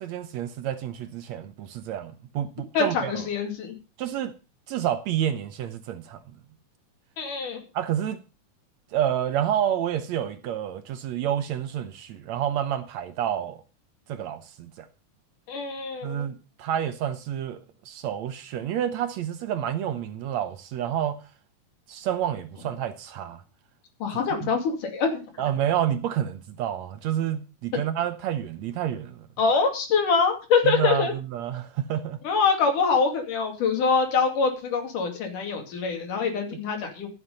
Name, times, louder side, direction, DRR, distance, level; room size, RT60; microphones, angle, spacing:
voice 1, 0.0-3.2 4.0-4.3 4.7-6.2 7.8-8.2 8.9-13.6 14.1-14.9 16.0-21.2 21.9-23.4 24.4-24.5 25.4-29.3 30.6-32.2, right 10 dB, 70° right, 1.9 m, -29 dB
voice 2, 2.7-3.7 7.2-7.6 15.5-16.3 24.0-25.2 29.4-31.1 32.2-37.1, left 5 dB, 75° left, 4.0 m, -24 dB
13.0 x 7.9 x 5.4 m
omnidirectional pair, 3.7 m